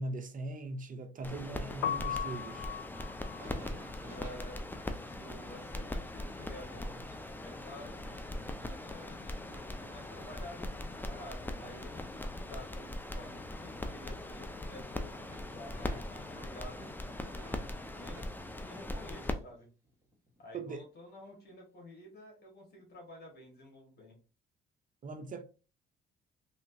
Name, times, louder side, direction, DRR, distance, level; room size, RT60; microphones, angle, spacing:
voice 1, 0.0-2.7 20.5-20.9 25.0-25.4, right 2 dB, 45° right, 0.6 m, -40 dB
sound 1, 1.2-19.3, left 1 dB, 10° left, 0.5 m, -41 dB
Piano, 1.7-7.6 7.9-9.5 9.7-16.2, left 9 dB, 85° left, 0.4 m, -43 dB
sound 2, 3.2-10.8 11.3-13.9 14.1-14.9 15.2-17.7 18.0-19.6 19.8-20.6 21.1-21.3, equal, 15° right, 1.5 m, -56 dB
voice 2, 4.1-4.6 5.1-7.1 7.4-9.4 9.8-17.5 17.9-18.2 18.6-19.7 20.4-24.2, left 1 dB, 55° left, 1.6 m, -51 dB
3.2 x 2.8 x 2.7 m
cardioid pair, 90°, 20 cm